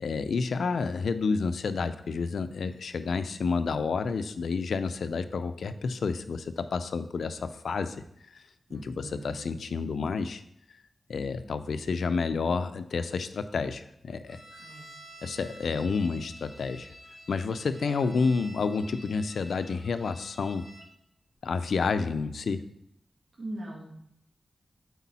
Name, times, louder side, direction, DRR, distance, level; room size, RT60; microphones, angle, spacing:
voice 1, 0.0-8.0 8.3-8.4 8.7-10.4 11.1-14.4 15.2-16.9 17.3-20.7 21.4-22.6, left 4 dB, 85° left, 10 dB, 0.5 m, -30 dB
voice 2, 8.7-9.3 14.6-14.8 18.0-18.3 23.4-24.0, right 1 dB, 55° right, -3 dB, 1.7 m, -41 dB
sound 1, 14.3-20.9, equal, 15° right, 2.1 m, -50 dB
8.1 x 4.5 x 4.2 m, 0.75 s
wide cardioid pair, 90°, 0 cm